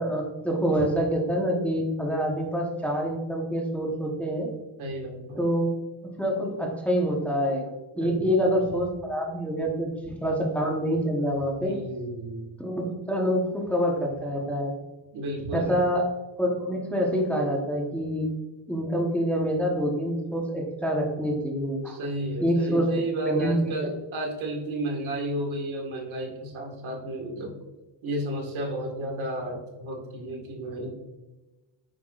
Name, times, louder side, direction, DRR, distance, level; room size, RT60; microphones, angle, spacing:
voice 1, 0.0-4.5 5.4-5.7 6.2-7.7 7.9-11.7 12.6-14.7 15.5-16.0 16.4-18.3 18.7-22.0 22.4-22.9 23.2-23.9, equal, 5° left, -1 dB, 1.0 m, -26 dB
voice 2, 4.8-5.4 8.0-8.4 11.6-12.5 15.1-15.8 21.9-27.5 28.0-30.9, right 1 dB, 85° right, 1 dB, 2.0 m, -32 dB
8.7 x 5.8 x 2.4 m, 1.1 s
wide cardioid pair, 160°, 46 cm